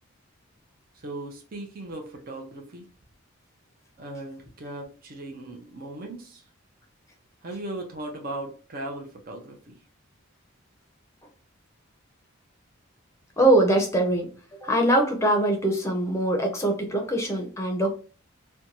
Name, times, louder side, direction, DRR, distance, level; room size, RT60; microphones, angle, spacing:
voice 1, 0.9-2.9 4.0-6.4 7.4-9.8, right 1 dB, 40° right, 0.6 m, -38 dB
voice 2, 13.4-14.3 14.6-17.9, right 1 dB, 15° left, 0.6 m, -22 dB
2.7 x 2.2 x 2.8 m
head